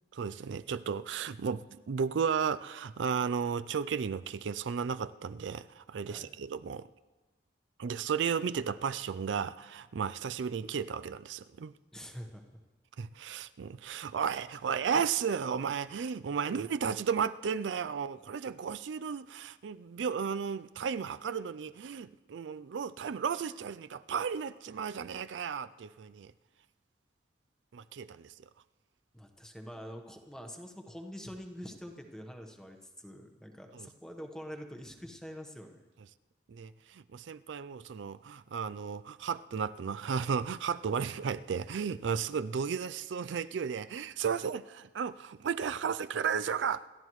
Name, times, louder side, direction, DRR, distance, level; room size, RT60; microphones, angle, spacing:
voice 1, 0.1-6.9 7.8-11.7 13.0-26.3 27.7-28.3 33.7-33.9 36.5-46.9, right 6 dB, 85° right, 0.4 m, -34 dB
voice 2, 11.9-12.6 29.1-35.8, equal, 5° left, 1.1 m, -45 dB
27.5 x 13.0 x 3.1 m
head